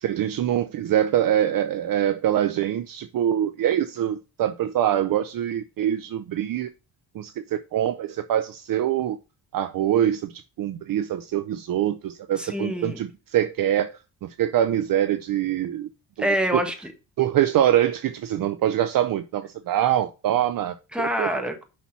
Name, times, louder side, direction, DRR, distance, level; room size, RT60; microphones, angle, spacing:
voice 1, 0.0-6.7 7.1-9.2 9.5-15.9 16.2-16.3 17.2-21.3, right 11 dB, 60° right, 0.6 m, -24 dB
voice 2, 12.4-13.0 16.2-16.7 20.9-21.6, equal, 5° right, 1.5 m, -25 dB
5.8 x 4.3 x 5.6 m
cardioid pair, 95°, 38 cm